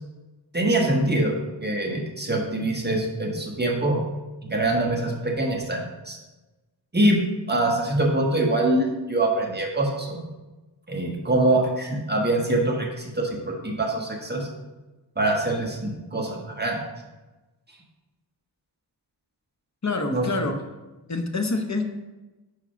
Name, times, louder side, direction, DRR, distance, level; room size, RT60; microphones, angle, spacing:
voice 1, 0.5-1.3 1.6-4.0 4.4-6.2 6.9-7.2 7.5-10.3 10.9-14.5 15.2-16.8 20.1-20.2, right 1 dB, 25° right, -1 dB, 1.3 m, -24 dB
voice 2, 19.8-20.6 21.1-21.9, left 3 dB, 40° left, 5 dB, 0.8 m, -26 dB
5.0 x 4.5 x 5.6 m, 1.1 s
wide cardioid pair, 70°, 43 cm